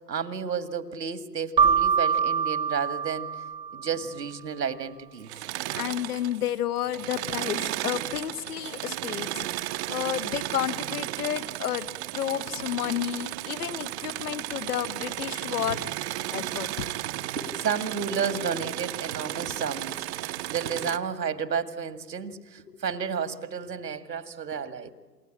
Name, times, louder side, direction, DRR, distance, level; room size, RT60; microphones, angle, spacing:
voice 1, 0.0-3.3 3.7-5.3 5.7-5.8 15.6-15.8 17.4-24.9, right 6 dB, 80° right, 11 dB, 2.1 m, -32 dB
Keyboard (musical), 1.6-4.1, right 7 dB, 10° right, 1.1 m, -25 dB
Engine / Mechanisms, 5.2-6.5 6.8-21.0, right 16 dB, 40° right, 0.9 m, -34 dB
voice 2, 5.7-9.5 9.9-11.9 12.1-15.8 16.3-16.9, left 11 dB, 65° left, 13 dB, 1.4 m, -31 dB
28.5 x 21.5 x 8.7 m, 1.4 s
figure-of-eight pair, 115°, 49 cm